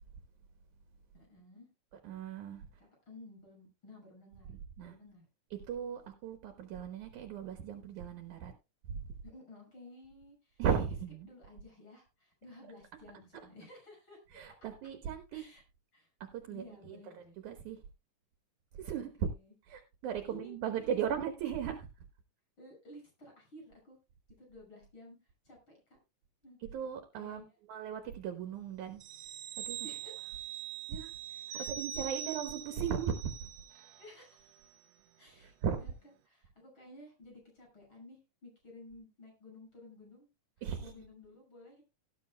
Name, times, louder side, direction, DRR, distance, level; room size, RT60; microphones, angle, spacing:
voice 1, 1.1-1.7 2.8-4.5 4.8-5.2 9.2-10.6 11.2-14.4 15.3-15.6 15.9-16.1 16.5-17.4 18.9-19.5 20.3-21.0 22.6-24.0 24.4-26.0 26.4-26.6 27.2-27.4 29.7-30.4 31.5-31.7 34.0-34.6 35.2-35.9 36.3-40.3 40.8-41.8, left 2 dB, 35° left, 6.9 m, -54 dB
voice 2, 2.0-2.7 4.8-4.9 5.5-8.5 8.9-9.0 10.6-11.3 14.3-15.4 16.2-17.8 18.7-19.1 19.7-21.9 26.6-27.4 27.7-29.0 29.7-29.8 30.9-33.5 35.4-35.8 40.6-40.9, right 8 dB, 70° right, 2.5 m, -37 dB
sound 1, 29.0-34.1 34.4-34.6, right 11 dB, 85° right, 1.4 m, -43 dB
17.5 x 9.5 x 2.2 m
omnidirectional pair, 3.8 m